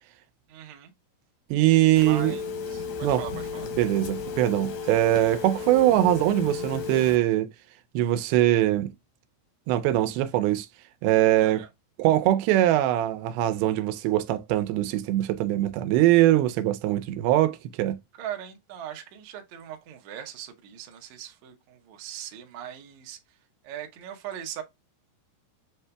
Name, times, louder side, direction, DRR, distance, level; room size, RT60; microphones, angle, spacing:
voice 1, 0.5-0.9 2.0-3.7 11.4-11.7 18.2-23.2 23.6-24.6, right 10 dB, 75° right, 1.7 m, -40 dB
voice 2, 1.5-2.3 3.0-3.2 3.8-7.5 7.9-8.9 9.7-10.7 11.0-11.6 12.0-18.0, right 14 dB, 90° right, 2.4 m, -22 dB
Telephone, 2.0-7.2, left 5 dB, 80° left, 1.6 m, -34 dB
7.7 x 2.7 x 2.2 m
omnidirectional pair, 4.2 m